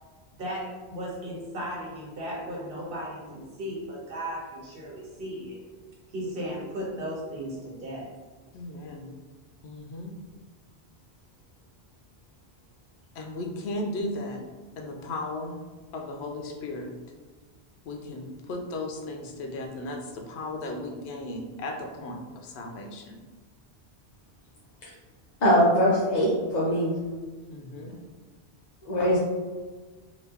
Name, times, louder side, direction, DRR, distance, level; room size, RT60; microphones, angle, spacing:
voice 1, 0.4-5.6 6.1-8.1, equal, 60° right, -4 dB, 1.1 m, -36 dB
voice 2, 8.5-9.1 9.6-10.1 13.2-14.4 14.8-15.6 15.9-16.9 17.9-23.2 27.5-27.9, left 2 dB, 80° left, 2 dB, 0.8 m, -36 dB
voice 3, 25.4-27.0 28.8-29.2, equal, 50° left, -6 dB, 0.6 m, -22 dB
2.9 x 2.4 x 3.3 m, 1.3 s
omnidirectional pair, 1.1 m